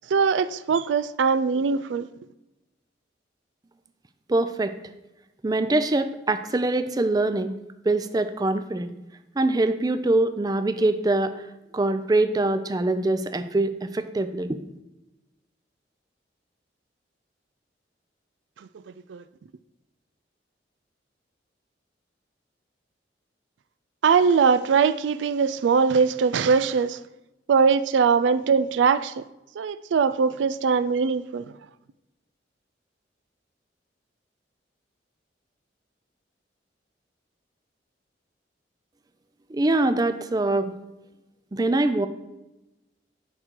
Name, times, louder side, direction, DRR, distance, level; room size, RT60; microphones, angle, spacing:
voice 1, 0.1-2.1 19.1-19.2 24.0-27.0 27.5-29.3 29.6-31.5, right 5 dB, 85° right, 0.4 m, -21 dB
voice 2, 4.3-4.8 5.4-7.6 7.8-8.9 9.4-11.3 11.7-14.6 39.5-40.7 41.5-42.1, right 2 dB, 20° right, 0.4 m, -23 dB
10.5 x 3.8 x 4.6 m
head